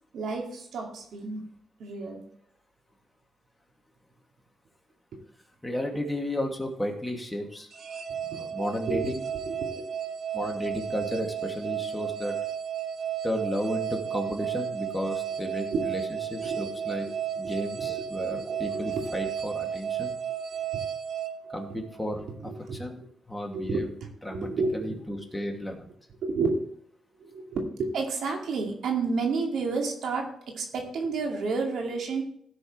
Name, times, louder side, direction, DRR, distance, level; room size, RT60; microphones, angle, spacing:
voice 1, 0.1-1.4 1.8-2.3 5.1-5.2 8.3-8.4 8.9-9.0 9.4-9.9 15.7-16.0 16.4-16.7 17.4-18.0 18.3-19.3 22.4-22.8 23.5-23.9 24.3-24.9 26.2-26.6 27.2-30.3 30.5-32.2, right 4 dB, 75° right, 1 dB, 2.3 m, -31 dB
voice 2, 5.6-7.7 8.3-9.3 10.3-12.4 13.2-17.1 17.4-20.2 21.5-23.0 23.3-23.9 24.2-25.9, equal, 10° left, 1 dB, 2.4 m, -33 dB
sound 1, 7.7-22.1, right 9 dB, 55° right, 1.1 m, -33 dB
16.5 x 6.5 x 3.2 m, 0.67 s
cardioid pair, 90°, 0 cm